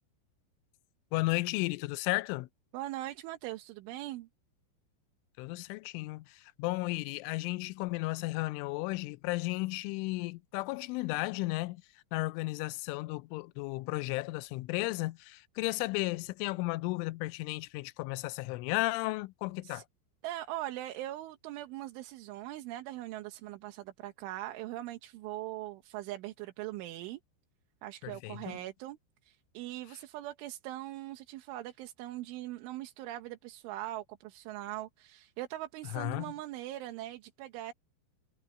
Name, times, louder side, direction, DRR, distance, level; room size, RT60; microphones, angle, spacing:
voice 1, 1.1-2.5 5.4-11.8 12.1-19.8 28.0-28.6 35.9-36.3, left 21 dB, 90° left, 3.1 m, -34 dB
voice 2, 2.7-4.3 19.6-19.8 20.2-27.2 27.8-37.7, right 15 dB, 85° right, 3.7 m, -41 dB
omnidirectional pair, 5.5 m